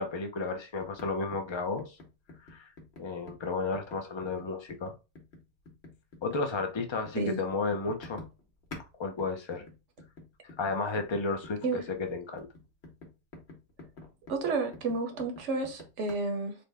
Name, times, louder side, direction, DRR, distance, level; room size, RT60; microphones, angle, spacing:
voice 1, 0.0-2.0 2.4-2.7 3.0-4.9 6.2-8.2 9.0-9.6 10.4-12.5, left 3 dB, 40° left, 0.4 m, -33 dB
sound 1, 0.8-8.9 9.2-16.1, left 2 dB, 65° left, 1.3 m, -49 dB
voice 2, 14.3-16.5, right 3 dB, 80° right, 1.1 m, -31 dB
3.9 x 2.2 x 3.3 m
omnidirectional pair, 1.2 m